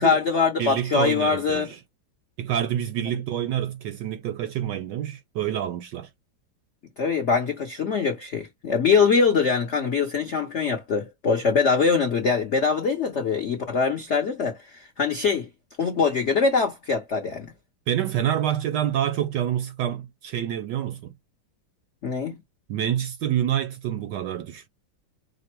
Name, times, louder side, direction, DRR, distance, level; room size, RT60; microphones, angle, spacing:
voice 1, 0.0-1.7 7.0-15.5 15.8-17.5 22.0-22.4, left 5 dB, 70° left, 0.6 m, -23 dB
voice 2, 0.6-1.8 2.4-6.1 17.9-21.1 22.7-24.7, right 10 dB, 75° right, 1.0 m, -27 dB
5.1 x 2.0 x 4.4 m
omnidirectional pair, 2.3 m